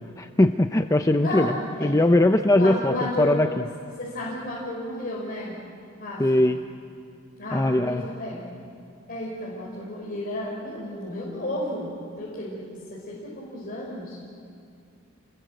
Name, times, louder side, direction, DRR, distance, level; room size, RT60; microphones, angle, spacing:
voice 1, 0.2-3.5 6.2-6.6 7.5-8.1, left 1 dB, 15° left, 7 dB, 0.6 m, -20 dB
voice 2, 1.2-2.0 2.5-3.5 4.0-5.6 6.0-6.4 7.4-8.5 9.1-12.6 12.9-14.2, left 1 dB, 45° left, -5 dB, 5.2 m, -32 dB
29.0 x 21.5 x 7.8 m, 2.4 s
head